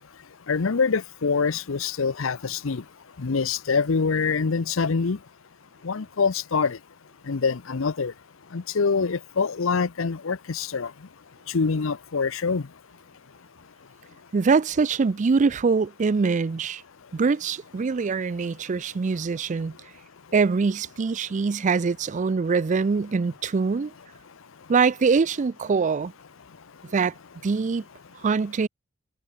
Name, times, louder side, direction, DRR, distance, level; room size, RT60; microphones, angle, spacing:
voice 1, 0.5-2.9 3.2-5.2 5.8-6.8 7.2-8.1 8.5-11.1 11.5-12.7 24.6-24.7 26.4-26.9, left 5 dB, 70° left, 0.7 m, -25 dB
voice 2, 14.3-16.8 17.1-19.7 20.3-23.9 24.7-26.1 26.9-27.1 27.4-27.8 28.2-28.7, right 5 dB, 35° right, 0.4 m, -23 dB
head